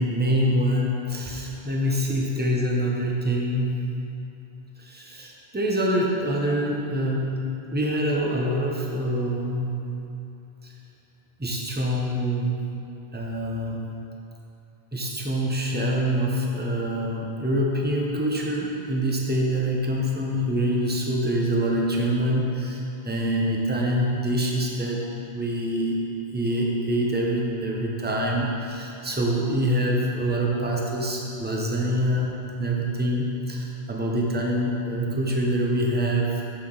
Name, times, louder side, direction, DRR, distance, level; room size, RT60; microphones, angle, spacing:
voice 1, 0.0-3.7 4.8-7.4 7.7-9.8 11.4-12.6 13.1-13.8 14.9-25.0 25.3-26.0 26.3-32.3 32.6-36.4, equal, 10° right, -2 dB, 0.7 m, -25 dB
7.7 x 6.7 x 3.9 m, 2.9 s
omnidirectional pair, 1.1 m